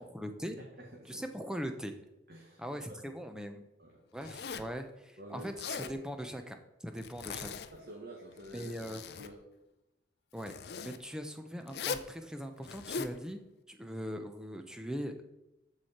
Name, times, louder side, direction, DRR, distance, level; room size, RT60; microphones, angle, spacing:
voice 1, 0.0-0.6 1.1-2.0 2.6-3.7 4.1-7.6 8.5-9.0 10.3-10.5 10.8-13.4 13.7-15.3, equal, 5° right, 6 dB, 0.7 m, -41 dB
voice 2, 0.8-1.2 2.3-3.0 3.8-3.9 5.2-5.9 7.7-9.4, right 1 dB, 55° right, -1 dB, 1.4 m, -49 dB
Zipper (clothing), 4.2-4.8 5.4-6.0 7.0-7.7 8.3-9.3 10.4-11.0 11.7-12.1 12.6-13.2, left 5 dB, 65° left, 0.5 m, -40 dB
14.0 x 4.8 x 4.3 m, 0.94 s
head